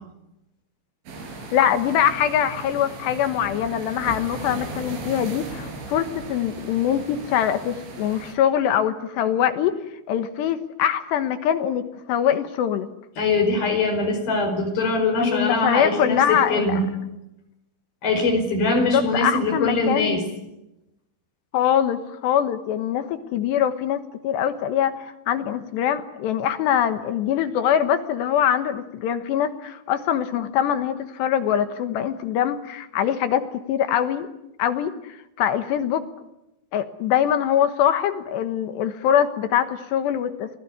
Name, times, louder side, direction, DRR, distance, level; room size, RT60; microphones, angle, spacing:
sound 1, 1.1-8.3, right 3 dB, 75° right, 7.3 m, -37 dB
voice 1, 1.5-9.7 10.1-12.9 15.2-16.8 18.7-20.2 21.5-34.3 34.6-36.0 36.7-40.6, left 9 dB, 70° left, 10 dB, 3.2 m, -23 dB
voice 2, 13.2-16.9 18.0-20.2, left 3 dB, 50° left, 5 dB, 6.7 m, -22 dB
28.0 x 19.5 x 9.5 m, 0.90 s
omnidirectional pair, 5.4 m